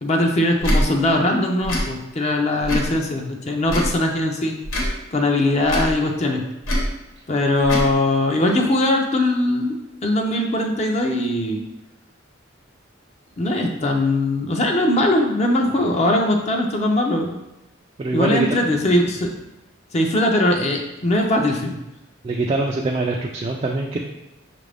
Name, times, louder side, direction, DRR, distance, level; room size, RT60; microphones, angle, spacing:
voice 1, 0.0-4.5 5.1-6.4 7.3-9.8 10.0-11.6 13.4-17.4 18.1-19.3 19.9-21.8, left 1 dB, 35° left, 2 dB, 0.5 m, -20 dB
Tick / Tick-tock, 0.6-0.8 1.6-1.9 2.6-2.9 3.6-4.0 4.6-4.9 5.6-5.9 6.6-6.9 7.6-7.9, equal, 90° left, 1.1 m, -22 dB
voice 2, 18.0-18.6 22.2-24.0, right 2 dB, 30° right, -1 dB, 0.3 m, -23 dB
5.8 x 2.5 x 3.3 m, 0.93 s
head